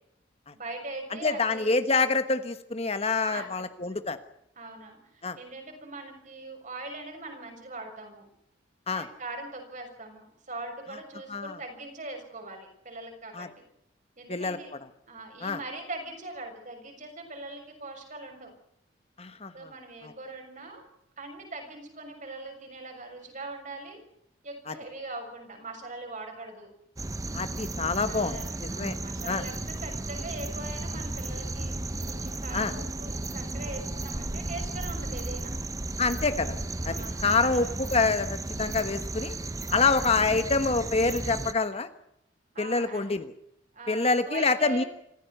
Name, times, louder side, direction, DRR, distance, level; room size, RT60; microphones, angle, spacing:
voice 1, 0.5-1.8 3.2-3.7 4.6-8.3 8.9-13.5 14.2-14.7 15.1-18.5 19.5-20.8 21.2-24.0 24.4-26.7 28.0-31.7 32.1-35.5 36.8-37.8 39.7-40.8 42.5-43.2 43.7-44.9, right 2 dB, 40° right, 4 dB, 6.4 m, -41 dB
voice 2, 1.2-4.2 5.2-5.4 8.9-9.1 11.3-11.5 13.3-13.5 14.3-14.6 15.4-15.6 19.2-19.7 20.0-20.1 24.7-24.8 27.3-28.9 29.2-29.4 32.5-32.7 36.0-36.6 36.8-37.0 37.2-39.3 39.7-41.9 42.6-43.3 43.9-44.8, left 4 dB, 35° left, 10 dB, 1.2 m, -26 dB
sound 1, 27.0-41.5, right 2 dB, 20° right, 0.8 m, -34 dB
26.0 x 15.5 x 8.0 m, 0.77 s
head